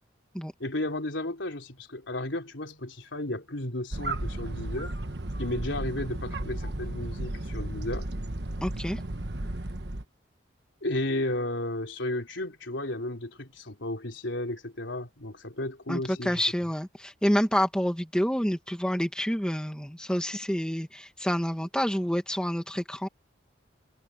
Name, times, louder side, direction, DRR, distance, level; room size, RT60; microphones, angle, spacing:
voice 1, 0.6-4.9 5.4-8.1 10.8-16.4, left 1 dB, 75° left, 3.6 m, -33 dB
sound 1, 3.9-10.0, right 1 dB, 60° right, 1.4 m, -34 dB
voice 2, 8.6-9.0 15.9-23.1, equal, 5° left, 2.0 m, -28 dB
head